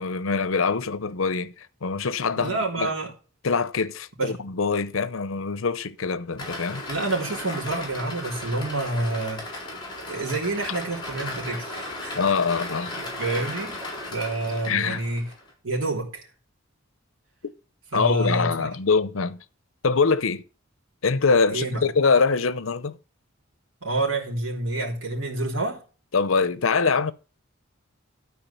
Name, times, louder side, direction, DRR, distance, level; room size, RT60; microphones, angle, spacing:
voice 1, 0.0-2.9 3.4-6.8 12.1-13.0 14.7-15.0 17.9-19.4 19.8-20.4 21.0-23.0 26.1-27.1, left 4 dB, 85° left, 0.7 m, -24 dB
voice 2, 2.4-3.1 4.2-4.3 6.9-9.6 10.1-12.3 13.2-15.3 15.6-16.3 17.9-18.7 21.5-21.9 23.8-25.8, right 2 dB, 80° right, 3.3 m, -28 dB
sound 1, 6.4-15.5, left 2 dB, 25° left, 4.0 m, -36 dB
12.0 x 4.8 x 7.0 m
head